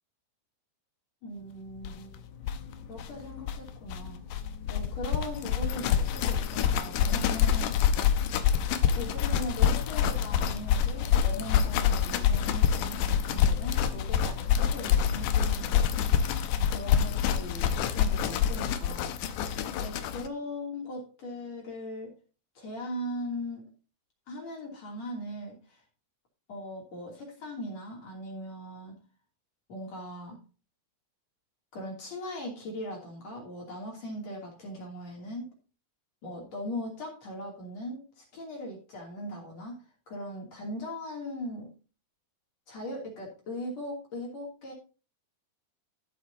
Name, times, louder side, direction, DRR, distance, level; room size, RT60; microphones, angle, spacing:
voice 1, 1.2-2.2 2.9-4.2 4.7-7.8 8.9-15.8 16.7-19.1 19.7-22.1 22.6-23.6 24.3-25.8 26.5-29.0 29.7-30.4 31.7-35.5 36.2-39.8 40.1-41.7 42.7-44.7, left 1 dB, 45° left, -2 dB, 3.7 m, -39 dB
sound 1, 1.8-1.9 2.1-2.2 2.4-20.3, left 8 dB, 90° left, 1.8 m, -26 dB
14.5 x 7.9 x 2.8 m, 0.35 s
omnidirectional pair, 4.7 m